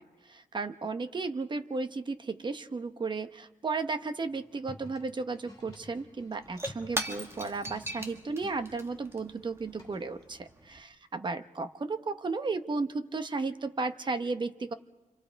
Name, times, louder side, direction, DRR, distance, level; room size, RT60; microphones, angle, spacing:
voice 1, 0.0-14.7, right 3 dB, 35° right, 9 dB, 0.9 m, -34 dB
sound 1, 4.3-8.6 9.8-10.2, left 2 dB, 30° left, 4.9 m, -50 dB
Shatter / Crushing, 5.6-5.7 5.9-10.8, right 1 dB, 20° right, 1.8 m, -40 dB
29.5 x 25.5 x 4.6 m, 1.1 s
wide cardioid pair, 145°, 13 cm